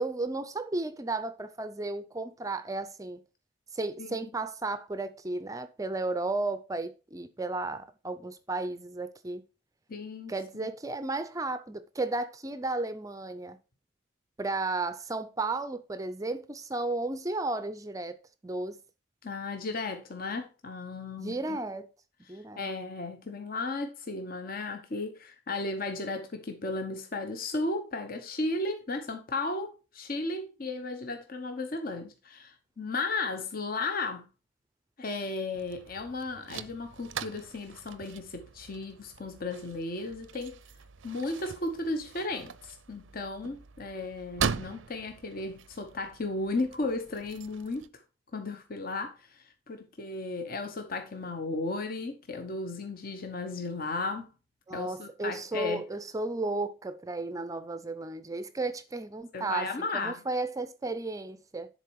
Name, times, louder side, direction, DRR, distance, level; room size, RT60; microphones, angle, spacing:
voice 1, 0.0-3.2 3.7-9.4 10.3-13.6 14.4-18.2 18.4-18.8 21.2-21.9 22.3-22.7 54.7-61.7, right 2 dB, 20° right, 0.5 m, -34 dB
voice 2, 9.9-10.7 19.2-21.6 22.3-34.3 35.0-40.6 41.0-47.9 48.3-54.3 54.7-55.8 59.3-60.2, left 3 dB, 50° left, 1.0 m, -35 dB
sound 1, 35.5-47.9, right 6 dB, 85° right, 0.6 m, -41 dB
10.5 x 4.3 x 4.7 m
head